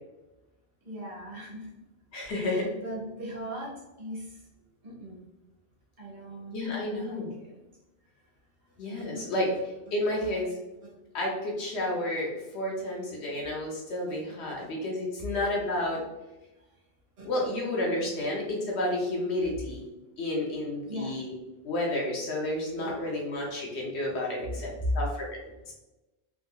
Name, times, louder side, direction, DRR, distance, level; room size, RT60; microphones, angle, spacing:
voice 1, 0.8-1.7 2.3-3.7 4.0-4.4 4.8-5.2 6.0-7.6 9.0-9.2 10.1-10.3 14.6-14.7 17.2-17.3 20.8-21.2 22.8-23.0 23.4-23.5 24.8-24.9, equal, 60° right, -4 dB, 1.4 m, -38 dB
voice 2, 2.1-2.7 6.5-7.3 8.8-10.5 11.1-16.0 17.2-19.8 20.2-21.3 21.6-25.4 25.7-25.8, left 1 dB, 90° left, -2 dB, 1.0 m, -31 dB
3.5 x 2.7 x 2.3 m, 1.0 s
omnidirectional pair, 1.1 m